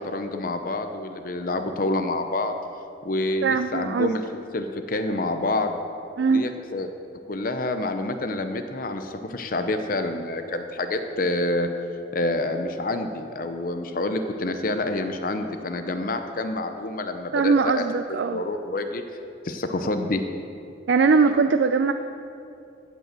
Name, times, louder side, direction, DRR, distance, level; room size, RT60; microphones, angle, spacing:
voice 1, 0.0-2.5 3.0-4.2 4.5-5.8 6.3-6.9 7.3-11.7 12.1-17.8 18.3-19.0 19.4-20.2, left 2 dB, 50° left, 7 dB, 0.7 m, -27 dB
voice 2, 3.4-4.1 6.2-6.4 17.3-18.4 20.9-21.9, right 4 dB, 70° right, 8 dB, 0.4 m, -20 dB
15.5 x 5.4 x 7.5 m, 2.6 s
head